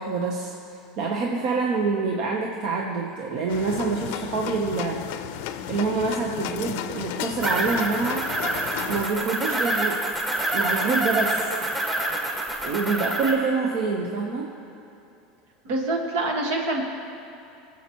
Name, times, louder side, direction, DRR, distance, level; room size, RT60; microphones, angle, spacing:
voice 1, 0.0-5.0 5.7-8.2 8.9-10.1 10.5-11.6 12.6-14.5, right 4 dB, 60° right, 0 dB, 0.9 m, -26 dB
sound 1, 3.5-9.1, left 10 dB, 70° left, 0.5 m, -33 dB
sound 2, 7.4-13.3, right 1 dB, 20° right, 1.7 m, -27 dB
voice 2, 15.6-16.8, right 2 dB, 75° right, 1 dB, 1.6 m, -25 dB
19.0 x 7.3 x 3.0 m, 2.7 s
supercardioid pair, 115°, 0 cm